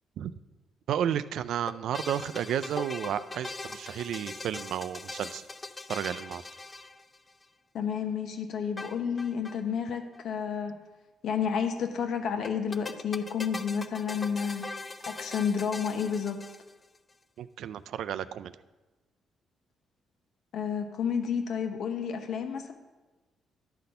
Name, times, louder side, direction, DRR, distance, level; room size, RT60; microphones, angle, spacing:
voice 1, 0.9-5.4 5.9-6.4 17.4-18.5, right 9 dB, 75° right, 13 dB, 0.4 m, -32 dB
sound 1, 1.7-7.4 8.8-9.6 9.9-10.0 10.1-10.2 12.4-17.0, left 3 dB, 25° left, 0.6 m, -41 dB
voice 2, 7.7-10.7 11.2-14.6 15.1-16.4 20.5-22.7, left 7 dB, 70° left, 6 dB, 0.9 m, -30 dB
11.5 x 4.2 x 6.6 m, 1.2 s
cardioid pair, 90°, 0 cm